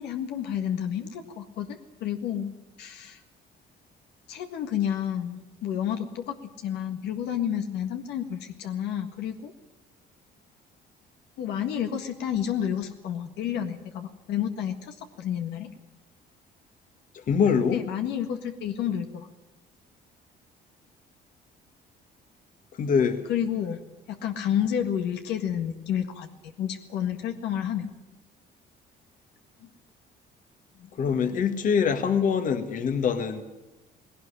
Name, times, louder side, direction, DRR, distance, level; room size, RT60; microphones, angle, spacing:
voice 1, 0.0-2.5 2.8-3.2 4.3-9.5 11.4-15.7 17.7-19.3 23.3-23.8 24.1-27.9 29.6-29.7 30.8-30.9, left 9 dB, 80° left, 6 dB, 1.7 m, -30 dB
voice 2, 17.3-17.8 22.8-23.2 31.0-33.4, left 6 dB, 50° left, 8 dB, 1.8 m, -24 dB
18.5 x 17.5 x 10.0 m, 1.0 s
cardioid pair, 110°, 17 cm